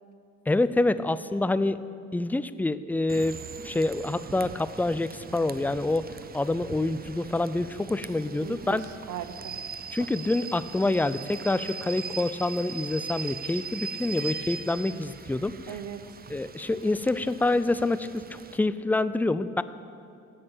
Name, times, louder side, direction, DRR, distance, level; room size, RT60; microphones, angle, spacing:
voice 1, 0.5-1.8 2.1-3.4 3.6-8.8 9.9-15.5 16.3-19.6, left 2 dB, 5° left, 14 dB, 0.4 m, -27 dB
Rain / Train, 3.1-18.6, right 6 dB, 30° right, 0.7 m, -41 dB
voice 2, 8.4-9.6 15.7-16.0, right 9 dB, 80° right, 12 dB, 0.9 m, -38 dB
16.0 x 6.6 x 8.7 m, 2.5 s
cardioid pair, 90°, 30 cm